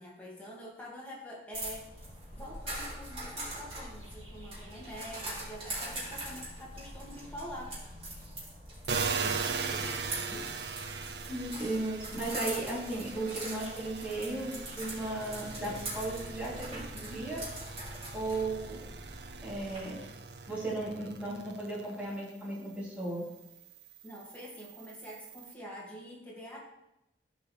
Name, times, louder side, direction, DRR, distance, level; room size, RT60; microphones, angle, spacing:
voice 1, 0.0-2.1 2.3-7.8 9.1-10.6 11.5-11.8 24.0-26.6, equal, 10° left, -6 dB, 2.1 m, -46 dB
sound 1, 1.5-19.8, right 1 dB, 35° right, 3.0 m, -42 dB
sound 2, 8.9-22.2 22.7-25.5, right 5 dB, 70° right, 0.6 m, -40 dB
voice 2, 11.3-17.4 18.1-18.8 19.4-20.0 20.4-23.2, right 2 dB, 5° right, -8 dB, 2.9 m, -35 dB
13.5 x 4.9 x 3.3 m, 0.90 s
head